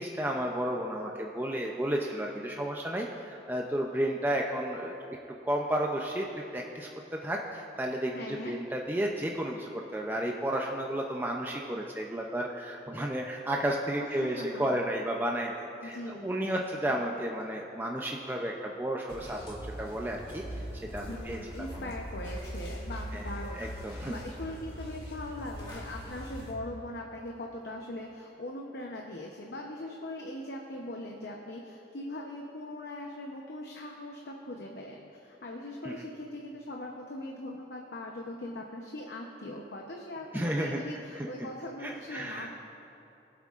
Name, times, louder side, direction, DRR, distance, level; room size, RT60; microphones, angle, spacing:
voice 1, 0.0-4.9 5.4-6.3 6.5-15.5 15.8-21.9 23.1-23.3 23.6-24.2 35.8-35.9 40.3-40.8 41.2-41.3 41.8-42.5, right 1 dB, 10° right, 0 dB, 0.5 m, -32 dB
voice 2, 8.1-8.5 14.0-14.6 15.8-17.0 21.1-42.5, left 1 dB, 75° left, 0 dB, 0.8 m, -41 dB
sound 1, 19.1-26.6, equal, 25° left, 1.8 m, -41 dB
22.0 x 8.2 x 2.5 m, 2.9 s
head